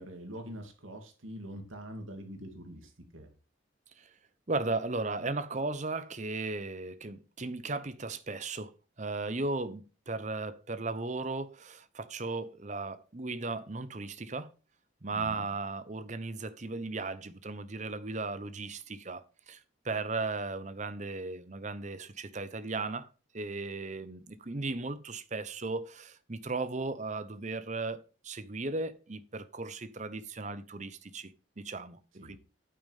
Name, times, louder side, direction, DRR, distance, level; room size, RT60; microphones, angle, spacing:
voice 1, 0.0-3.3 15.1-15.5 32.1-32.4, equal, 90° right, 2.6 m, -44 dB
voice 2, 4.5-8.7 9.0-14.5 15.0-23.1 23.3-32.0 32.3-32.4, right 3 dB, 35° right, 0.8 m, -36 dB
9.2 x 8.7 x 3.5 m
head